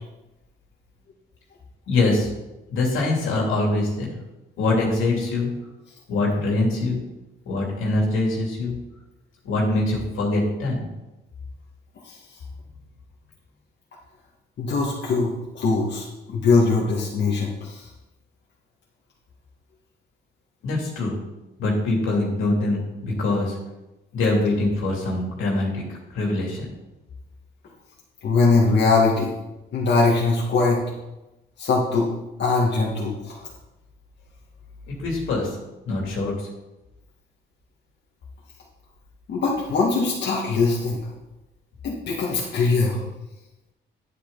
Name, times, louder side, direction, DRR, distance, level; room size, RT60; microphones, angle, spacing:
voice 1, 1.9-2.3 2.7-4.2 4.6-5.5 6.1-7.0 7.4-8.8 9.4-10.9 20.6-21.2 21.6-23.6 24.1-25.8 26.1-26.7 34.9-35.6 35.9-36.5, left 2 dB, 85° left, -1 dB, 3.1 m, -23 dB
voice 2, 14.6-17.9 28.2-29.3 29.7-30.8 31.6-32.1 32.4-33.5 39.3-41.0 41.8-43.0, left 3 dB, 60° left, -4 dB, 2.1 m, -21 dB
9.5 x 9.4 x 4.1 m, 1.0 s
cardioid pair, 90°, 20 cm